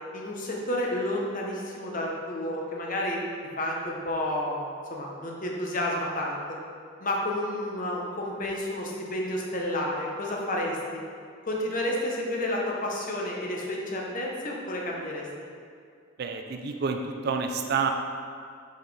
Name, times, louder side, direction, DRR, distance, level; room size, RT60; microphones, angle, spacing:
voice 1, 0.1-3.2 3.6-4.6 4.9-6.6 7.0-11.0 11.4-15.3, left 1 dB, 40° left, -2 dB, 0.9 m, -30 dB
voice 2, 16.2-17.9, right 5 dB, 50° right, 4 dB, 0.4 m, -28 dB
6.0 x 5.5 x 3.3 m, 2.3 s
head